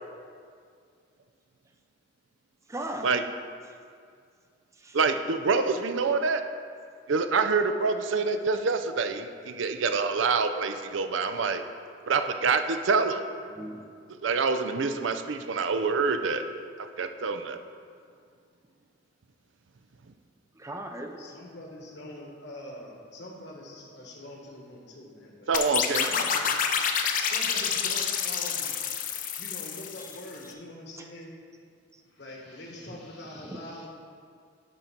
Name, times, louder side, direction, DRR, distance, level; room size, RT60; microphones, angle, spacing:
voice 1, 2.7-3.1 4.8-5.0 13.6-13.9 20.6-21.3 27.2-27.3 32.9-33.0 33.4-33.6, right 1 dB, 15° right, 4 dB, 0.5 m, -37 dB
voice 2, 4.9-6.4 7.1-11.6 12.1-13.2 14.2-16.4 17.0-17.6 25.5-26.0, right 4 dB, 85° right, 8 dB, 0.5 m, -26 dB
voice 3, 21.2-25.5 25.9-26.6 27.0-28.7 29.4-31.3 32.1-33.9, left 1 dB, 60° left, -1 dB, 1.4 m, -44 dB
sound 1, 25.5-30.3, left 7 dB, 45° left, 0.5 m, -28 dB
11.0 x 4.0 x 5.8 m, 2.2 s
head